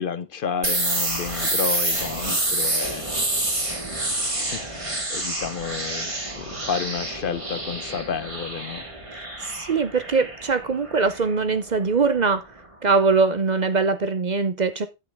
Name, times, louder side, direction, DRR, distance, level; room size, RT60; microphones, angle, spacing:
voice 1, 0.0-3.2 4.1-8.8, left 6 dB, 55° left, 0.8 m, -31 dB
sound 1, 0.6-12.3, right 2 dB, 30° right, 1.9 m, -28 dB
voice 2, 9.2-12.5 12.8-14.9, right 4 dB, 45° right, 0.7 m, -22 dB
9.0 x 8.6 x 3.5 m
omnidirectional pair, 1.1 m